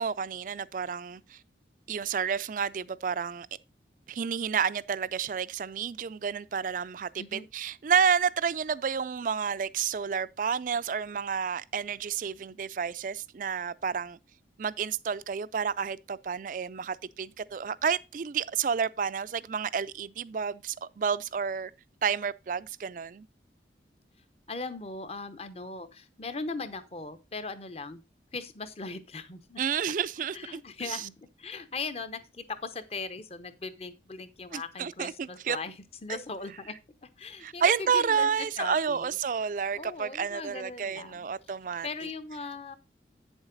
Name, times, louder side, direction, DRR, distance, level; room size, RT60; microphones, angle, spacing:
voice 1, 0.0-1.4 1.9-3.5 4.1-14.2 14.6-21.7 22.0-23.3 29.6-30.6 34.5-35.6 37.4-41.9, right 6 dB, 50° right, 0.4 m, -30 dB
voice 2, 24.5-28.0 28.3-29.6 30.3-36.8 37.0-39.4 39.7-41.5 41.8-42.8, left 3 dB, 35° left, 0.8 m, -39 dB
8.8 x 7.2 x 3.9 m
head